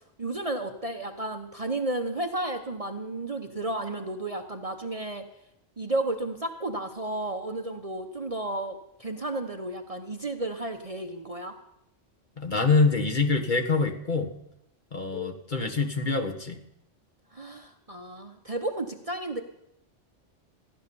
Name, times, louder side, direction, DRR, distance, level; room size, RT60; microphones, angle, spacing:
voice 1, 0.2-5.3 5.8-11.5 17.3-19.4, right 2 dB, 30° right, 5 dB, 1.0 m, -32 dB
voice 2, 12.4-14.3 14.9-16.6, left 4 dB, 40° left, 3 dB, 1.5 m, -25 dB
15.5 x 11.0 x 6.9 m, 0.79 s
omnidirectional pair, 1.3 m